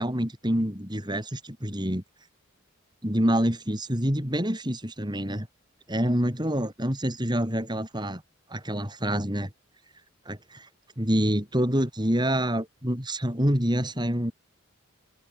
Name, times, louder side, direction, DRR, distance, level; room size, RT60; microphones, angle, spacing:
voice 1, 0.0-2.0 3.0-5.5 5.9-8.2 8.5-9.5 10.3-10.7 11.0-14.3, equal, 20° right, 7.2 m, -27 dB
open air
head